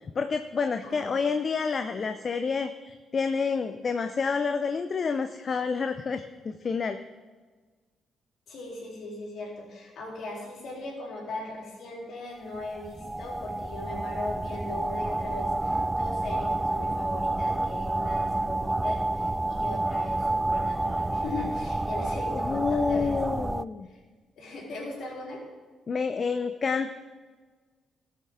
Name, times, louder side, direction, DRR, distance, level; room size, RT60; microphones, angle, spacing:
voice 1, 0.2-7.0 22.3-23.9 25.9-26.9, left 5 dB, 45° left, 9 dB, 0.6 m, -29 dB
voice 2, 0.8-1.3 8.5-23.4 23.9-24.0 24.3-25.4, left 2 dB, 60° left, -3 dB, 3.4 m, -38 dB
sound 1, 12.5-23.6, right 2 dB, 20° right, 0.3 m, -29 dB
17.5 x 6.6 x 3.7 m, 1.4 s
figure-of-eight pair, 40°, 0 cm